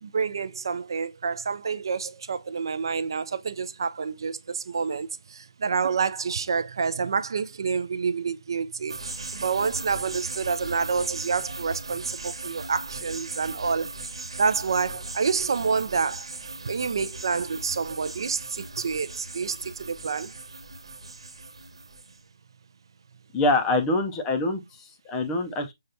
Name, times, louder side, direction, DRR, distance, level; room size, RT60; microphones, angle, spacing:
voice 1, 0.0-13.9 14.4-16.3 16.6-20.3, right 5 dB, 50° right, 0.4 m, -28 dB
sound 1, 8.9-22.2, right 3 dB, 75° right, 1.1 m, -38 dB
voice 2, 23.3-25.7, left 2 dB, 10° left, 0.4 m, -25 dB
6.3 x 2.3 x 2.6 m
hypercardioid pair, 170°, 3 cm